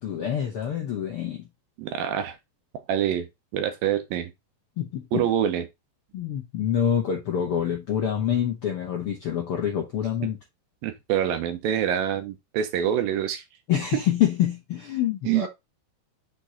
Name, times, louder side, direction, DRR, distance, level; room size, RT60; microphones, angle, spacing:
voice 1, 0.0-1.5 4.8-5.2 6.1-10.4 13.7-15.5, left 9 dB, 80° left, 1.2 m, -26 dB
voice 2, 1.8-2.4 2.9-3.3 3.5-4.3 5.1-5.7 10.8-13.4 15.3-15.5, right 10 dB, 80° right, 2.6 m, -25 dB
6.1 x 4.6 x 3.9 m
omnidirectional pair, 4.1 m